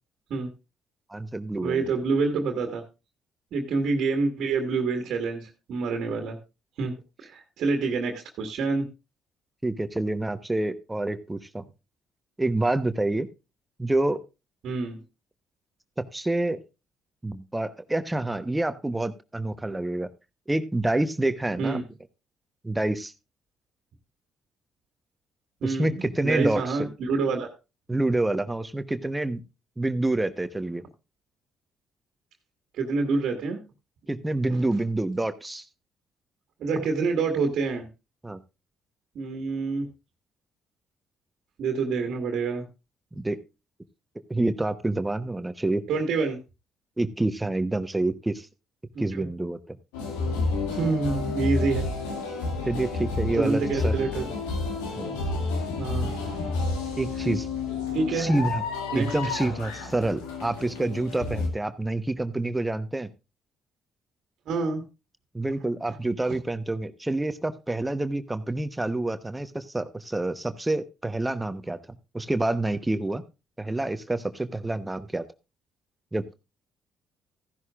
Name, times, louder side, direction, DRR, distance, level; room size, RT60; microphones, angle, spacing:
voice 1, 1.1-1.9 9.6-11.6 12.4-13.3 13.8-14.2 16.0-16.6 17.2-20.1 20.5-21.8 22.6-23.1 25.6-26.8 27.9-29.4 29.8-30.8 34.1-35.7 38.2-38.4 43.1-43.4 44.3-45.8 47.0-48.5 49.0-49.8 52.7-54.1 55.0-55.2 57.0-57.5 58.1-58.6 58.9-63.1 65.3-71.8 72.1-73.2 73.6-75.2 76.1-76.3, right 2 dB, 15° right, 11 dB, 1.0 m, -27 dB
voice 2, 1.6-2.8 3.5-6.4 6.8-8.9 14.6-15.0 21.6-21.8 25.6-27.5 32.7-33.6 34.5-34.6 36.6-37.9 39.2-39.9 41.6-42.7 45.9-46.4 49.1-49.3 50.7-51.9 53.3-54.2 55.8-56.1 57.9-58.3 58.9-59.1 64.5-64.8 65.9-66.0 66.2-66.4, right 4 dB, 65° right, 4 dB, 1.7 m, -27 dB
sound 1, 49.9-61.5, left 3 dB, 85° left, 2.1 m, -30 dB
15.0 x 11.0 x 2.4 m, 0.28 s
hypercardioid pair, 55°, 0 cm